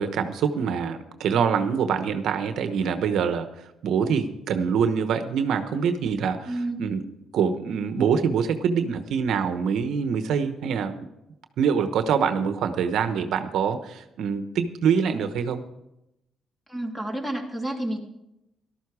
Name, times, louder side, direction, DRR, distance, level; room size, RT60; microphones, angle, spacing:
voice 1, 0.0-7.0 7.3-11.1 11.6-15.6, right 6 dB, 75° right, 9 dB, 1.0 m, -25 dB
voice 2, 6.5-6.9 16.7-18.0, right 1 dB, 5° left, 2 dB, 2.8 m, -30 dB
13.5 x 12.5 x 4.8 m, 0.86 s
cardioid pair, 90°, 0 cm